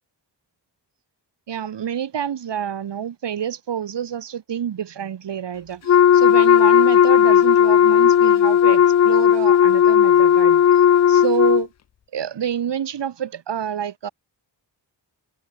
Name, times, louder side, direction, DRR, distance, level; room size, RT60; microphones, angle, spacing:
voice 1, 1.5-10.6 11.1-11.7 12.1-14.1, right 9 dB, 80° right, 1.8 m, -28 dB
Wind instrument woodwind instrument, 5.9-11.6, left 9 dB, 40° left, 0.4 m, -14 dB
wide cardioid pair, 145°, 42 cm